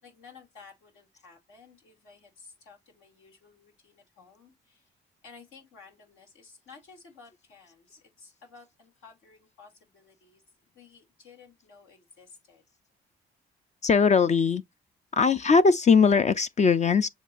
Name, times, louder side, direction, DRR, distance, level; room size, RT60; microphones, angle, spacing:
voice 1, 0.0-4.9 5.2-10.4 10.7-12.6, left 5 dB, 80° left, 2.6 m, -54 dB
voice 2, 13.8-14.6 15.1-17.1, left 5 dB, 35° left, 0.4 m, -20 dB
7.2 x 2.9 x 2.5 m
cardioid pair, 75°, 21 cm